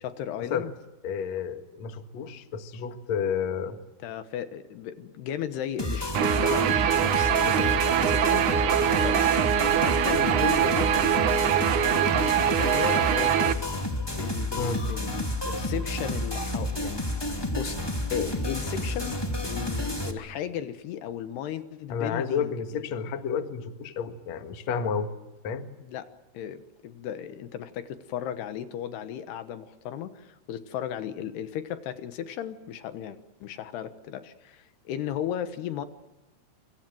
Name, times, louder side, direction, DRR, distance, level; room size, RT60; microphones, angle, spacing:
voice 1, 0.0-0.7 4.0-11.1 12.0-13.6 14.1-19.2 19.4-22.5 25.8-35.9, left 10 dB, 75° left, 10 dB, 3.2 m, -35 dB
voice 2, 1.0-3.8 14.5-14.8 21.9-25.1 25.4-25.7, left 6 dB, 55° left, 7 dB, 2.3 m, -31 dB
sound 1, 5.8-20.1, left 1 dB, 10° left, 1.2 m, -30 dB
Guitar, 6.1-13.5, right 9 dB, 60° right, 2.3 m, -23 dB
27.0 x 24.5 x 7.8 m, 1.0 s
omnidirectional pair, 4.8 m